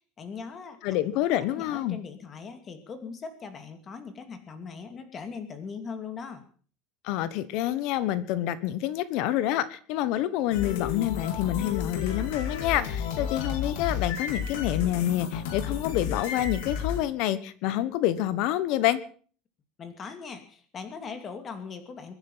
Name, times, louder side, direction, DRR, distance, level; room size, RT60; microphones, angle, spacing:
voice 1, 0.2-0.8 1.5-6.4 19.8-22.2, left 5 dB, 25° left, 8 dB, 2.6 m, -40 dB
voice 2, 0.8-2.0 7.0-19.0, left 13 dB, 55° left, 16 dB, 1.2 m, -27 dB
sound 1, 10.5-17.0, left 7 dB, 90° left, 4.3 m, -32 dB
23.5 x 10.5 x 5.7 m, 0.43 s
cardioid pair, 170°, 0 cm